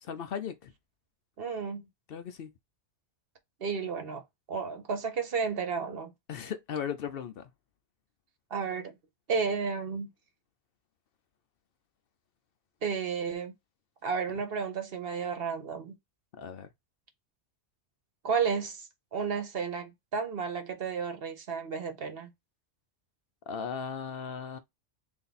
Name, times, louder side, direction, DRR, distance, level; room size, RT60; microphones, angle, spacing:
voice 1, 0.0-0.7 2.1-2.5 6.3-7.5 16.4-16.7 23.5-24.6, left 7 dB, 65° left, 0.7 m, -37 dB
voice 2, 1.4-1.8 3.6-4.2 4.5-6.1 8.5-8.9 9.3-10.1 12.8-13.5 14.0-16.0 18.2-22.3, right 5 dB, 60° right, 1.1 m, -32 dB
3.4 x 2.6 x 4.0 m
omnidirectional pair, 1.1 m